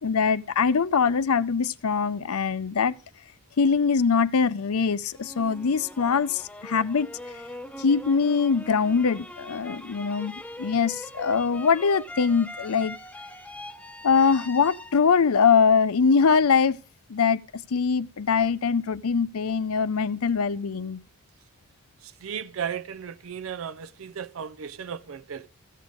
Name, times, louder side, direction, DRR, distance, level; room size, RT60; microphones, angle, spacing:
voice 1, 0.0-2.9 3.6-7.1 7.8-10.3 10.6-13.0 14.0-16.8 17.1-17.4 17.7-21.0, left 5 dB, 80° left, 0.6 m, -22 dB
sound 1, 5.1-16.2, left 1 dB, 5° left, 0.6 m, -42 dB
voice 2, 22.0-25.5, right 7 dB, 65° right, 0.5 m, -35 dB
15.0 x 6.5 x 5.1 m
head